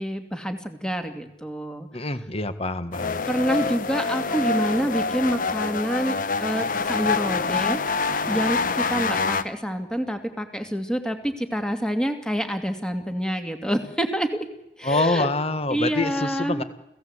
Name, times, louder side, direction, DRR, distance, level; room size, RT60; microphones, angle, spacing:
voice 1, 0.0-2.1 3.3-7.8 8.3-14.5 14.8-15.3 15.7-16.6, equal, 5° left, 6 dB, 2.5 m, -27 dB
voice 2, 1.9-3.2 14.8-16.6, left 2 dB, 35° left, 11 dB, 1.7 m, -25 dB
sound 1, 2.9-9.4, left 4 dB, 50° left, 1.2 m, -26 dB
29.5 x 17.0 x 8.2 m, 0.88 s
head